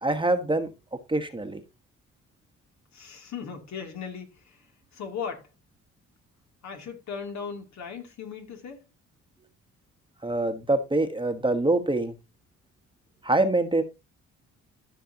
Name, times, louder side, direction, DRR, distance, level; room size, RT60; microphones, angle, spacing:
voice 1, 0.0-0.7 1.1-1.6 10.2-12.1 13.2-13.8, right 2 dB, 15° right, 1.2 m, -24 dB
voice 2, 2.9-4.6 4.9-5.5 6.6-8.8, left 6 dB, 65° left, 2.8 m, -37 dB
14.5 x 5.9 x 2.9 m
cardioid pair, 90°, 30 cm